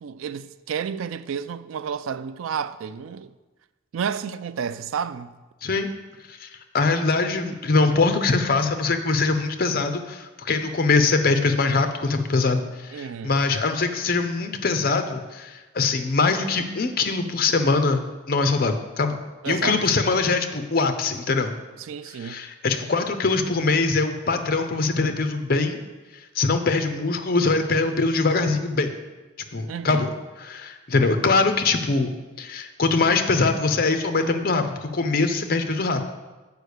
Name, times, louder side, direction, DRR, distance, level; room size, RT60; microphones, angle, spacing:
voice 1, 0.0-3.3 3.9-5.3 12.9-13.3 19.4-19.8 21.8-22.4 29.7-30.1, right 7 dB, 75° right, 0.3 m, -31 dB
voice 2, 6.7-18.0 18.3-19.2 19.5-21.5 22.2-25.8 26.3-28.9 29.5-30.1 30.4-32.1 32.4-36.0, left 3 dB, 45° left, 0.6 m, -22 dB
6.6 x 5.0 x 6.5 m
head